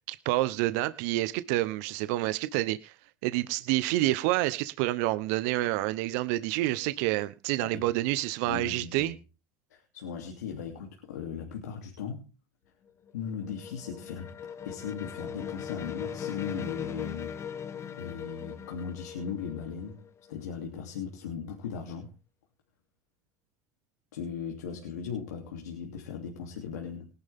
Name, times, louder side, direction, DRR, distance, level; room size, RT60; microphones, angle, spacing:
voice 1, 0.1-2.9 3.2-9.1, right 17 dB, 70° right, 0.9 m, -28 dB
voice 2, 8.4-9.2 9.7-12.3 13.1-14.4 14.6-17.4 18.0-22.1 24.1-27.1, left 7 dB, 90° left, 3.0 m, -38 dB
sound 1, 12.9-20.6, left 7 dB, 30° left, 1.4 m, -40 dB
19.5 x 11.5 x 3.6 m
supercardioid pair, 95°, 9 cm